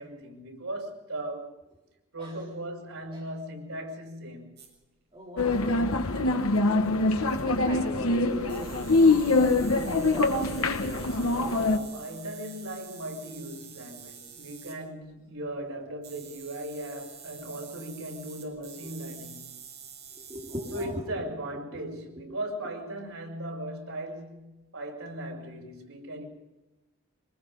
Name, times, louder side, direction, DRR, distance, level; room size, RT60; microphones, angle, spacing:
voice 1, 0.0-1.5 2.1-4.6 11.4-19.5 20.7-26.3, right 1 dB, 85° right, 7.1 m, -38 dB
sound 1, 4.6-4.7 6.9-7.0 7.3-7.9 8.5-14.8 16.0-21.1, right 7 dB, 50° right, 7.5 m, -48 dB
voice 2, 5.1-5.8 7.0-8.8 9.2-11.6 20.2-21.0, equal, 25° right, 3.8 m, -40 dB
sound 2, 5.4-11.8, left 2 dB, 80° left, 1.5 m, -24 dB
26.5 x 20.0 x 5.5 m
head